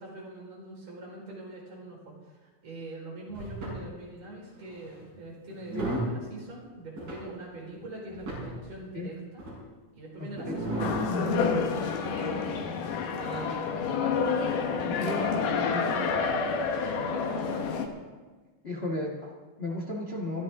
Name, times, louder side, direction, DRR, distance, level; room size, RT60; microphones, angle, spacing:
voice 1, 0.0-9.4 9.9-11.0 11.6-12.5 13.2-14.0 15.0-15.8 16.5-17.8, right 1 dB, 50° right, -4 dB, 5.8 m, -43 dB
sound 1, 3.3-3.8 4.7-5.0 5.5-6.2 7.0-7.2 7.7-7.8 8.1-8.6 9.4-9.5 10.3-11.0 11.5-11.7, right 2 dB, 80° right, 7.4 m, -34 dB
sound 2, 10.8-17.9, left 5 dB, 75° left, 2.9 m, -28 dB
voice 2, 15.0-15.3 18.6-20.4, left 1 dB, 40° left, 1 dB, 0.9 m, -34 dB
23.0 x 14.5 x 3.7 m, 1.3 s
omnidirectional pair, 3.8 m